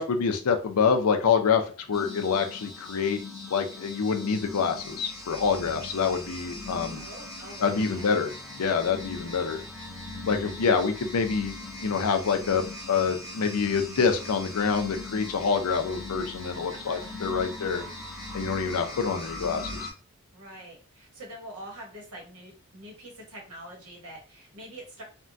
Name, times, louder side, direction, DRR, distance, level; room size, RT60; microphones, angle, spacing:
voice 1, 0.0-1.6 1.9-3.2 3.5-7.1 7.6-9.6 10.3-11.6 11.8-17.8 18.3-19.9, left 5 dB, 90° left, 6 dB, 0.5 m, -26 dB
sound 1, 1.9-19.9, left 2 dB, ahead, 0.6 m, -40 dB
voice 2, 6.9-8.1 16.7-17.1 20.3-25.0, right 1 dB, 90° right, -1 dB, 1.2 m, -45 dB
3.4 x 2.2 x 2.5 m, 0.36 s
head